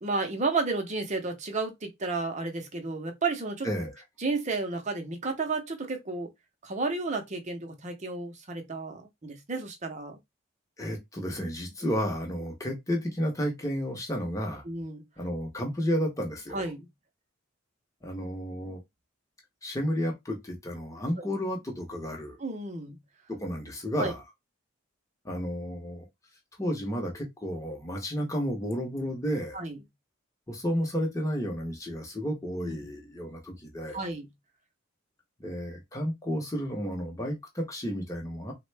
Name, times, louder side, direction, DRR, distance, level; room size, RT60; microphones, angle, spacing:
voice 1, 0.0-3.7 4.2-6.3 6.6-10.2 14.7-15.0 16.5-16.9 22.4-23.0 24.0-24.1 29.5-29.8 32.6-32.7 33.9-34.3, right 3 dB, 35° right, 0.6 m, -32 dB
voice 2, 10.8-14.6 15.2-16.7 18.0-18.8 19.6-22.4 23.4-24.2 25.2-26.1 26.6-29.6 30.5-34.0 35.4-38.5, equal, 15° left, 0.8 m, -32 dB
3.5 x 2.1 x 3.2 m
head